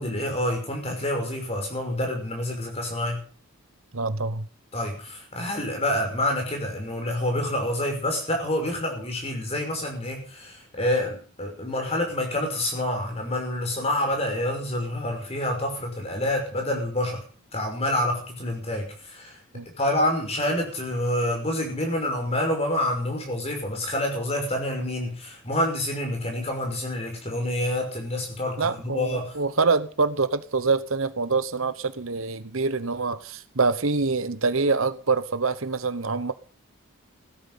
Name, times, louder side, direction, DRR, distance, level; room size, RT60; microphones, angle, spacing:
voice 1, 0.0-3.2 4.7-17.2 17.5-19.4 19.8-29.3, left 1 dB, 30° left, 5.8 m, -27 dB
voice 2, 3.9-4.5 19.5-19.7 28.6-36.3, right 4 dB, 70° right, 1.1 m, -25 dB
16.5 x 13.0 x 5.7 m
head